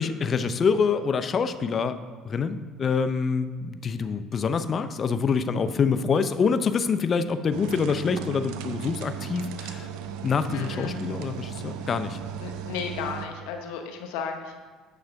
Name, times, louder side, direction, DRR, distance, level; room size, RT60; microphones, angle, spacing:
voice 1, 0.0-2.0 2.2-9.9 10.2-12.2, left 5 dB, 40° left, 11 dB, 0.5 m, -26 dB
sound 1, 7.5-13.3, right 8 dB, 80° right, 0.6 m, -36 dB
voice 2, 10.5-11.0 12.4-14.6, left 6 dB, 80° left, 4 dB, 1.0 m, -34 dB
9.1 x 6.4 x 3.5 m, 1.4 s
supercardioid pair, 85°, 0 cm